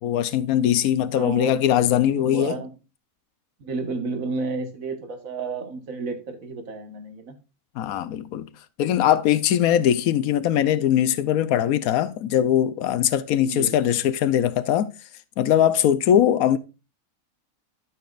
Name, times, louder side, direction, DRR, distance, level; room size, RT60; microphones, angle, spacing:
voice 1, 0.0-2.6 7.8-8.5 8.8-14.9 15.4-16.6, left 10 dB, 80° left, 1.1 m, -21 dB
voice 2, 1.1-1.6 2.1-2.7 3.6-7.4 13.4-13.7, right 3 dB, 70° right, 1.8 m, -31 dB
12.0 x 6.4 x 2.4 m
omnidirectional pair, 1.5 m